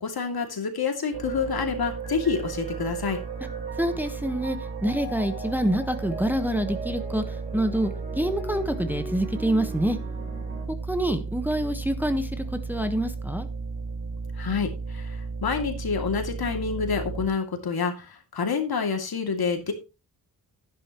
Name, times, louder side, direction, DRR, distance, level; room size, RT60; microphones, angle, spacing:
voice 1, 0.0-3.2 14.4-19.7, left 5 dB, 65° left, 2.5 m, -28 dB
sound 1, 1.1-17.3, right 4 dB, 80° right, 2.1 m, -34 dB
sound 2, 1.8-10.7, right 2 dB, 25° right, 4.8 m, -40 dB
voice 2, 3.8-10.0 10.9-13.5, right 1 dB, 5° right, 1.2 m, -27 dB
11.0 x 10.5 x 3.0 m
cardioid pair, 80°, 40 cm